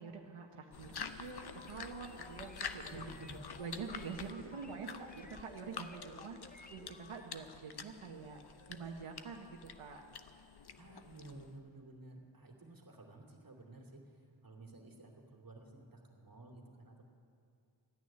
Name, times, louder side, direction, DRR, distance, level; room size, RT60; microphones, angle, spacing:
voice 1, 0.0-3.0 3.6-8.4 8.7-10.0, right 5 dB, 85° right, 1 dB, 1.1 m, -46 dB
sound 1, 0.7-11.6, left 6 dB, 50° left, 0.8 m, -48 dB
sound 2, 1.0-2.7 3.0-3.1 4.2-7.0 8.2-9.0, left 3 dB, 90° left, 2.8 m, -63 dB
sound 3, 1.4-7.3, left 3 dB, 20° left, 0.6 m, -57 dB
voice 2, 2.9-3.4 10.8-17.1, right 2 dB, 45° right, 0 dB, 2.5 m, -53 dB
14.0 x 9.5 x 9.9 m, 2.4 s
wide cardioid pair, 130°, 49 cm